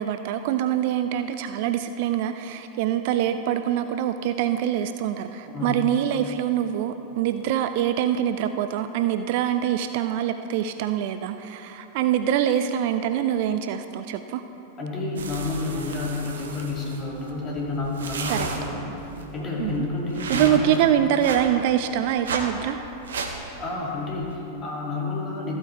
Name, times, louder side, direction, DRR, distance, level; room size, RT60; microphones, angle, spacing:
voice 1, 0.0-14.4 18.3-18.5 19.6-19.9 20.3-22.8, right 10 dB, 50° right, 9 dB, 0.4 m, -24 dB
voice 2, 14.8-18.8 19.3-20.9 23.6-25.6, left 3 dB, 30° left, -3 dB, 2.3 m, -30 dB
sound 1, 15.2-24.3, right 4 dB, 65° right, 0.9 m, -35 dB
14.0 x 8.6 x 3.3 m, 3.0 s
figure-of-eight pair, 90°, 0 cm